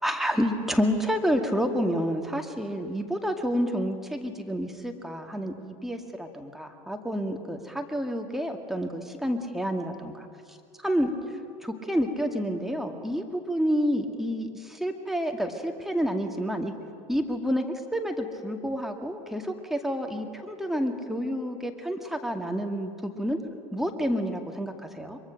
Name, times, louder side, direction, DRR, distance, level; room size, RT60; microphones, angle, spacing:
voice 1, 0.0-10.3 10.8-11.1 11.6-16.8 17.1-23.4 23.7-25.2, equal, ahead, 4 dB, 2.1 m, -29 dB
23.0 x 23.0 x 6.6 m, 2.4 s
hypercardioid pair, 80°, 18 cm